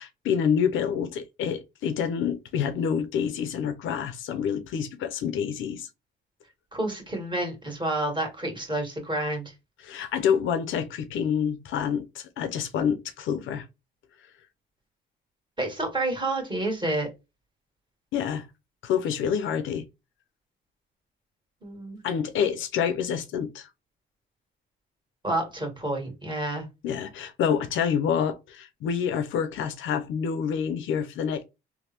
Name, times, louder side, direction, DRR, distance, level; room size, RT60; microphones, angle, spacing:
voice 1, 0.0-5.9 9.8-13.6 18.1-18.5 18.8-19.8 22.0-23.7 26.8-31.4, left 7 dB, 80° left, 0.5 m, -27 dB
voice 2, 6.7-9.5 15.6-17.1 21.6-22.0 25.2-26.6, right 1 dB, 25° right, 1.5 m, -29 dB
3.3 x 2.1 x 2.8 m
cardioid pair, 90°, 20 cm